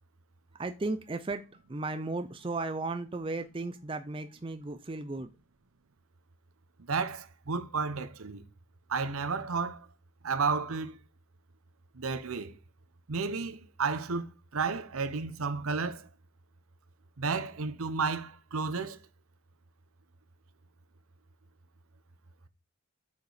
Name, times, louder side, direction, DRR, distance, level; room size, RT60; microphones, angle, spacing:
voice 1, 0.5-5.3, right 3 dB, 25° right, 0.5 m, -35 dB
voice 2, 6.9-8.4 8.9-9.9 10.2-11.0 11.9-12.6 13.1-16.1 17.2-19.0, right 4 dB, 80° right, 0.8 m, -32 dB
6.6 x 5.0 x 5.0 m
head